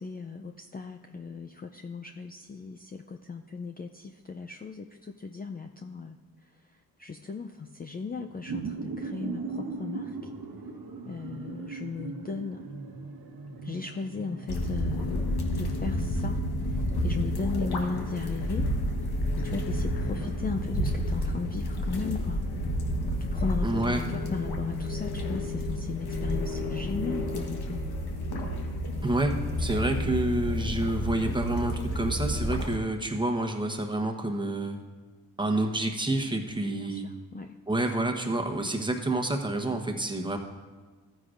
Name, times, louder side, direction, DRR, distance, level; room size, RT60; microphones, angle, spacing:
voice 1, 0.0-6.2 6.6-10.2 11.1-12.7 13.6-18.7 19.3-22.4 23.2-27.8 36.7-37.6, left 4 dB, 25° left, 5 dB, 0.4 m, -37 dB
sound 1, 8.1-22.9, right 4 dB, 70° right, 1.2 m, -41 dB
sound 2, 14.5-32.8, left 1 dB, 80° left, 1.3 m, -30 dB
voice 2, 23.6-24.1 29.0-34.8 35.4-37.1 37.7-40.4, right 2 dB, 10° right, 3 dB, 1.0 m, -28 dB
14.5 x 9.4 x 2.5 m, 1.4 s
cardioid pair, 70°, 38 cm